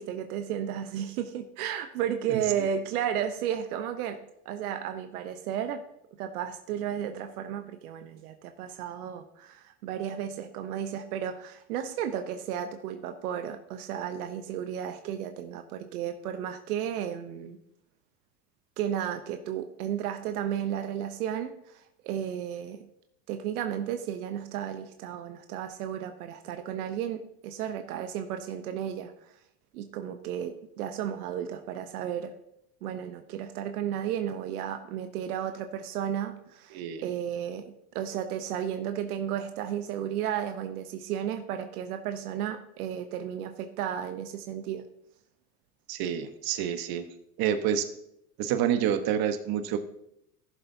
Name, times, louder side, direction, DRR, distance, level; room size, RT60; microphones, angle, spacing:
voice 1, 0.0-5.8 6.2-17.6 18.8-22.9 23.3-29.1 29.7-32.4 32.8-44.8, right 9 dB, 85° right, 7 dB, 0.9 m, -33 dB
voice 2, 36.7-37.0 45.9-47.1 47.4-47.9 48.4-49.8, right 9 dB, 55° right, 8 dB, 1.2 m, -28 dB
15.5 x 7.1 x 2.7 m, 0.77 s
supercardioid pair, 95°, 44 cm